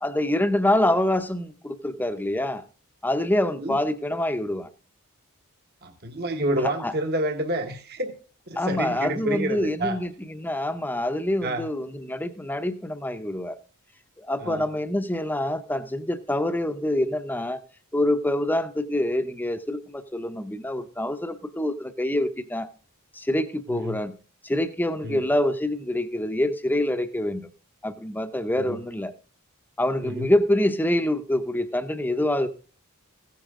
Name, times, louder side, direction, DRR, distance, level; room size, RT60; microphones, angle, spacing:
voice 1, 0.0-2.6 3.0-4.7 6.6-6.9 8.6-13.6 14.2-17.6 17.9-22.7 23.1-24.1 24.4-27.5 27.8-29.1 29.8-32.5, left 1 dB, 10° left, 9 dB, 0.7 m, -26 dB
voice 2, 5.8-8.1 8.5-10.0 11.4-11.7 14.4-14.6 23.7-24.0 25.0-25.2 28.6-28.8 30.0-30.3, right 1 dB, 45° right, 5 dB, 1.3 m, -29 dB
15.5 x 10.5 x 3.7 m, 0.38 s
head